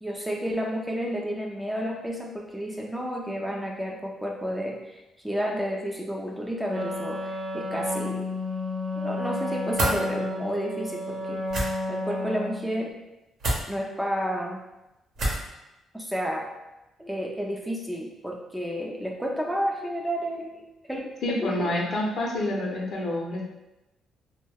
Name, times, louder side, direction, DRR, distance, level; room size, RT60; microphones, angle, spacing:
voice 1, 0.0-8.3 8.9-11.4 11.9-12.9 13.7-14.6 15.9-16.5 17.0-21.7, equal, 5° right, -1 dB, 0.4 m, -31 dB
Wind instrument woodwind instrument, 6.7-12.8, left 2 dB, 35° right, 1.0 m, -31 dB
sound 1, 9.7-10.0 11.5-11.7 13.4-13.6 15.2-15.5, right 1 dB, 65° right, 0.8 m, -26 dB
voice 2, 21.2-23.4, left 1 dB, 60° left, -2 dB, 0.6 m, -28 dB
2.2 x 2.1 x 3.3 m, 0.97 s
cardioid pair, 90°, 0 cm